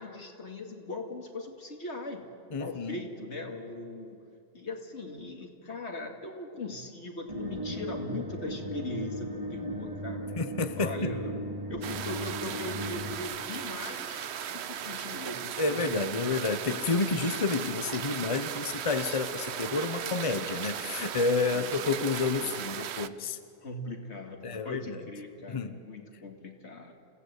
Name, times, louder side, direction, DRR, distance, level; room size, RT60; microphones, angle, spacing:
voice 1, 0.0-2.3 2.5-4.2 4.5-10.3 10.8-11.4 11.7-14.2 14.5-16.3 18.3-18.4 21.5-21.9 22.4-23.3 23.6-26.9, left 2 dB, 90° left, 3 dB, 2.6 m, -40 dB
voice 2, 2.5-3.0 10.4-11.1 15.6-23.4 24.4-25.0 25.5-25.7, left 4 dB, 30° left, 10 dB, 1.0 m, -30 dB
sound 1, 7.3-13.2, equal, 30° right, 2.5 m, -37 dB
sound 2, 11.8-23.1, right 9 dB, 75° right, 1.0 m, -37 dB
28.5 x 16.5 x 8.3 m, 2.5 s
omnidirectional pair, 1.1 m